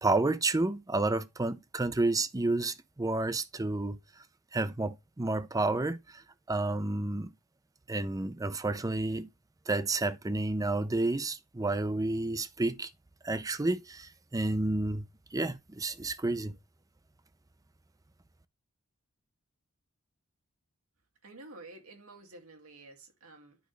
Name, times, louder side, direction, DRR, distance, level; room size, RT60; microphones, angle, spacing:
voice 1, 0.0-4.0 4.5-6.2 6.5-7.3 7.9-9.3 9.7-12.9 13.2-15.0 15.3-16.5, right 2 dB, 15° right, 0.6 m, -30 dB
voice 2, 21.2-23.6, right 2 dB, 85° right, 2.2 m, -50 dB
10.5 x 5.3 x 3.2 m
head